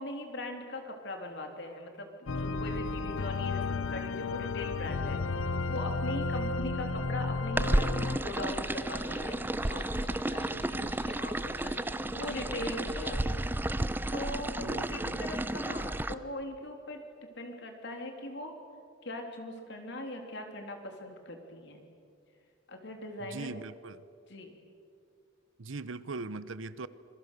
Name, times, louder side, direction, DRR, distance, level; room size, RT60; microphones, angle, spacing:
voice 1, 0.0-5.2 5.7-7.7 8.2-9.4 9.7-13.5 14.1-18.5 19.0-21.8 22.7-23.5 24.3-24.6, left 1 dB, 60° left, 4 dB, 3.2 m, -40 dB
sound 1, 2.3-8.2, left 3 dB, 90° left, 0.7 m, -33 dB
sound 2, 7.6-16.1, right 1 dB, 10° right, 0.5 m, -32 dB
sound 3, 8.2-13.3, left 2 dB, 30° left, 1.2 m, -48 dB
voice 2, 10.5-11.0 14.6-15.2 23.2-24.0 25.6-26.9, right 3 dB, 80° right, 16 dB, 0.9 m, -41 dB
26.0 x 22.0 x 6.8 m, 2.3 s
head